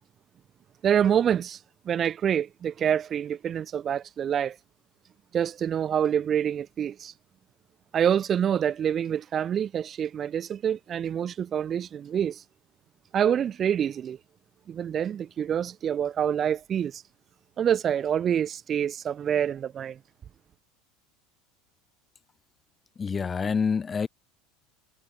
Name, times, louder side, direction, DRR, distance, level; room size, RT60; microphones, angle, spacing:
voice 1, 0.8-1.6 1.9-4.6 5.3-7.1 7.9-12.4 13.1-14.2 14.7-17.0 17.6-20.0, right 9 dB, 35° right, 4.3 m, -26 dB
voice 2, 23.0-24.1, left 5 dB, 25° left, 5.9 m, -27 dB
supercardioid pair, 100°, 0 cm